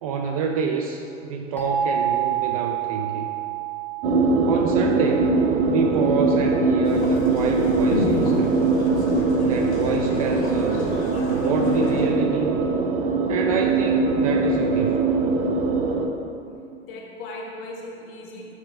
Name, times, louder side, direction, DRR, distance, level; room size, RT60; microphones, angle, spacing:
voice 1, 0.0-3.3 4.4-5.3 5.7-8.6 9.4-10.9 11.3-12.6 13.3-15.0, right 5 dB, 30° right, 2 dB, 0.4 m, -27 dB
sound 1, 1.6-6.3, right 10 dB, 5° left, 1.4 m, -29 dB
sound 2, 4.0-16.1, right 3 dB, 45° right, 0.8 m, -22 dB
sound 3, 6.8-12.1, left 3 dB, 60° left, 1.3 m, -31 dB
voice 2, 16.8-18.5, left 2 dB, 45° left, -1 dB, 1.5 m, -38 dB
11.5 x 7.2 x 2.3 m, 2.6 s
figure-of-eight pair, 100°, 38 cm